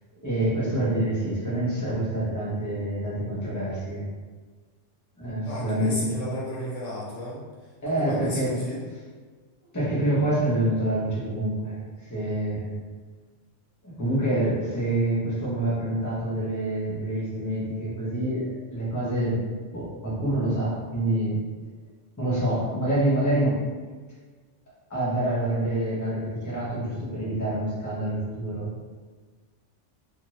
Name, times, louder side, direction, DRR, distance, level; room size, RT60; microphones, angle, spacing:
voice 1, 0.2-4.0 5.2-6.2 7.8-8.6 9.7-12.7 13.8-19.4 19.7-21.4 22.2-23.6 24.9-28.7, right 1 dB, 15° left, -8 dB, 0.7 m, -26 dB
voice 2, 5.5-8.8, equal, 80° left, -6 dB, 1.3 m, -34 dB
2.6 x 2.6 x 3.0 m, 1.4 s
omnidirectional pair, 1.3 m